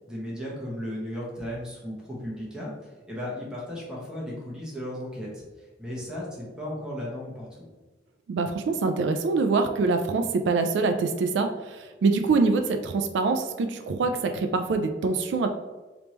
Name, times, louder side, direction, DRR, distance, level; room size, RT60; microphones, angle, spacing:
voice 1, 0.1-7.7, equal, 5° right, -5 dB, 1.1 m, -36 dB
voice 2, 8.3-15.5, right 4 dB, 75° right, 7 dB, 0.3 m, -25 dB
3.5 x 2.9 x 2.9 m, 1.2 s
head